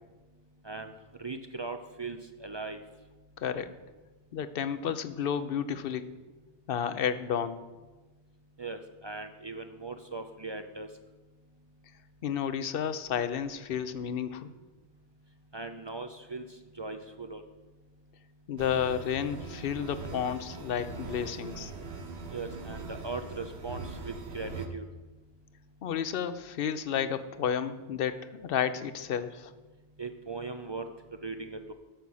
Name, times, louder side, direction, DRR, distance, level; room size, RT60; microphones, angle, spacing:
voice 1, 1.2-2.8 8.6-10.9 15.5-17.4 22.3-24.8 30.0-30.9 31.2-31.7, right 3 dB, 40° right, 8 dB, 0.4 m, -39 dB
voice 2, 3.4-3.7 4.3-6.0 6.7-7.6 12.2-14.5 18.5-21.7 25.8-29.5, left 8 dB, 65° left, 12 dB, 0.8 m, -31 dB
sound 1, 18.6-24.7, right 4 dB, 85° right, 1.2 m, -41 dB
9.0 x 7.0 x 6.2 m, 1.2 s
omnidirectional pair, 1.0 m